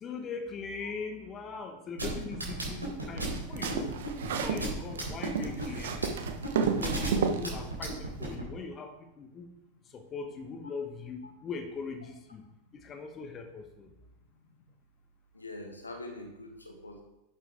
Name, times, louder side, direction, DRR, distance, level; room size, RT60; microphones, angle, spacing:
voice 1, 0.0-4.0 4.3-6.0 6.7-9.5 9.9-12.4 12.7-13.9, left 4 dB, 25° left, 6 dB, 1.2 m, -40 dB
sound 1, 2.0-8.4, right 2 dB, 80° right, 3.6 m, -34 dB
sound 2, 3.2-4.7 5.0-7.4, right 6 dB, 60° right, 1.1 m, -31 dB
voice 2, 15.3-17.0, left 2 dB, 80° left, 3 dB, 1.8 m, -44 dB
11.0 x 7.4 x 3.6 m, 0.90 s
figure-of-eight pair, 90°, 0 cm